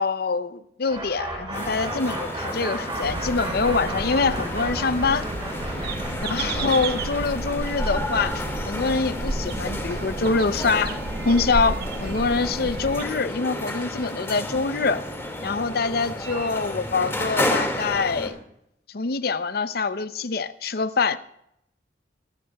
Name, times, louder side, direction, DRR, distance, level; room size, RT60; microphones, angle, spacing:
voice 1, 0.0-5.3 6.2-11.0 11.2-15.0 15.4-18.4 18.9-21.2, left 4 dB, 60° left, 0.6 m, -25 dB
sound 1, 0.9-10.7, right 2 dB, 30° right, 5.6 m, -35 dB
sound 2, 1.5-18.3, left 1 dB, 15° left, 2.1 m, -32 dB
sound 3, 3.0-13.0, right 2 dB, 60° right, 0.9 m, -31 dB
22.5 x 13.5 x 2.3 m
head